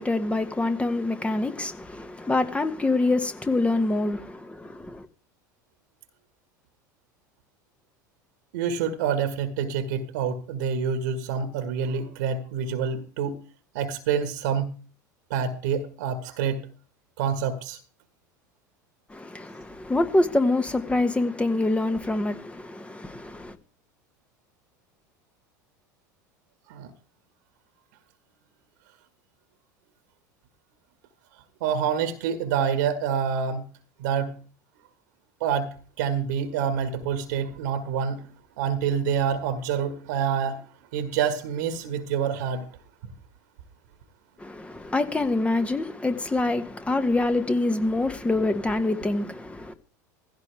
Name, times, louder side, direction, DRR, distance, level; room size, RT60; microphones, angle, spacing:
voice 1, 0.0-5.0 19.1-23.5 44.4-49.7, left 2 dB, 10° left, 1.8 m, -25 dB
voice 2, 8.5-13.4 13.8-14.7 15.3-16.6 17.2-17.8 26.7-26.9 31.6-33.6 34.0-34.3 35.4-38.2 38.6-40.6 40.9-42.6, right 7 dB, 70° right, 1.8 m, -27 dB
16.5 x 16.0 x 3.5 m
hypercardioid pair, 80°, 10 cm